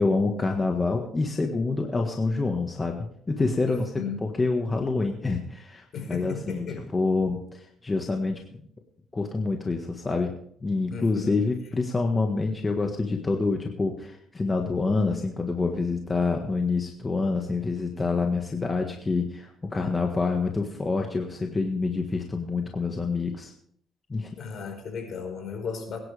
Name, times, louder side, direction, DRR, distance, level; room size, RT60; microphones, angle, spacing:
voice 1, 0.0-3.0 3.3-3.9 4.2-6.6 6.9-8.4 9.1-10.3 10.6-23.5 24.1-24.3, left 3 dB, 25° left, 3 dB, 1.6 m, -27 dB
voice 2, 3.6-4.3 5.9-6.9 10.9-11.4 24.4-26.0, left 5 dB, 55° left, 3 dB, 4.9 m, -35 dB
22.0 x 10.5 x 3.5 m, 0.65 s
cardioid pair, 100°, 0 cm